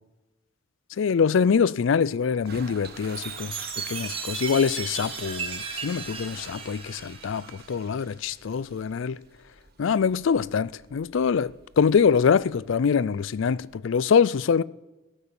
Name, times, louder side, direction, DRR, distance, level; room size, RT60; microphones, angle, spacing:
voice 1, 1.0-9.2 9.8-14.6, left 6 dB, 65° left, 0.4 m, -24 dB
Toilet flush, 2.3-13.8, right 5 dB, 50° right, 1.3 m, -48 dB
Chime, 3.1-7.8, right 5 dB, 25° right, 1.4 m, -35 dB
14.5 x 8.8 x 7.0 m
head